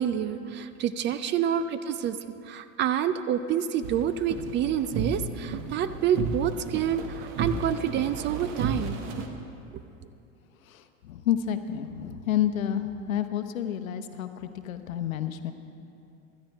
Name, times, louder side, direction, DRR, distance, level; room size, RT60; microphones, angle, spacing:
voice 1, 0.0-2.2 2.4-9.0, right 9 dB, 30° right, 12 dB, 0.4 m, -28 dB
sound 1, 3.8-9.3, right 4 dB, 50° right, 1.4 m, -33 dB
voice 2, 10.7-15.5, left 10 dB, 85° left, 9 dB, 0.9 m, -30 dB
16.5 x 12.5 x 3.5 m, 2.6 s
hypercardioid pair, 95°, 40 cm